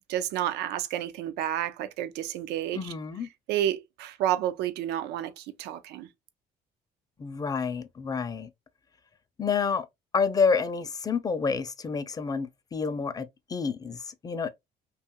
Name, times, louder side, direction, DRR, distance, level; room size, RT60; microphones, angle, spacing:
voice 1, 0.1-2.9 3.5-6.1, right 11 dB, 85° right, 0.4 m, -30 dB
voice 2, 2.7-3.3 7.2-8.5 9.4-9.9 10.1-14.5, left 5 dB, 20° left, 0.4 m, -29 dB
2.8 x 2.3 x 2.7 m
cardioid pair, 110°, 17 cm